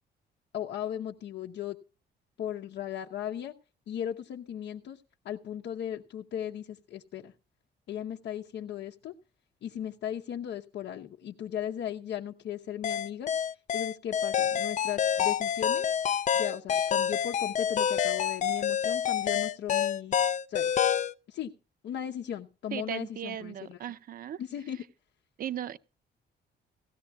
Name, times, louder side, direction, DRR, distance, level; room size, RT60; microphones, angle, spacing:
voice 1, 0.5-1.8 2.4-3.5 3.9-7.3 7.9-9.1 9.6-13.3 13.7-15.9 16.3-20.2 20.5-20.7 21.3-21.5 21.8-23.8 24.4-24.8, left 10 dB, 70° left, 0.9 m, -37 dB
sound 1, 12.8-21.1, left 9 dB, 40° left, 0.5 m, -27 dB
voice 2, 22.7-24.4 25.4-25.8, right 10 dB, 50° right, 0.6 m, -37 dB
17.0 x 14.5 x 2.4 m
cardioid pair, 150°, 19 cm